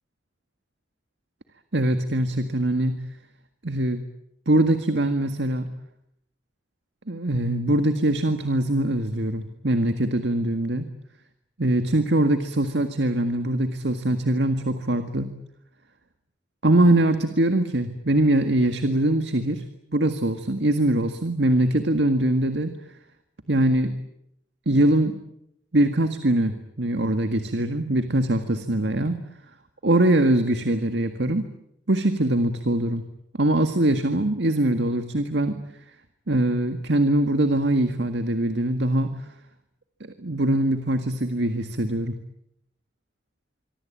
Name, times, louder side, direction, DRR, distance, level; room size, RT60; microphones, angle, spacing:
voice 1, 1.7-3.0 3.6-4.0 4.5-5.7 7.1-10.9 11.6-15.3 16.6-19.6 19.9-22.7 23.5-23.9 24.7-25.2 25.7-29.2 29.8-31.5 31.9-33.0 33.4-35.6 36.3-39.1 40.2-42.2, right 1 dB, 80° right, 8 dB, 1.8 m, -22 dB
25.5 x 24.5 x 8.7 m, 0.77 s
head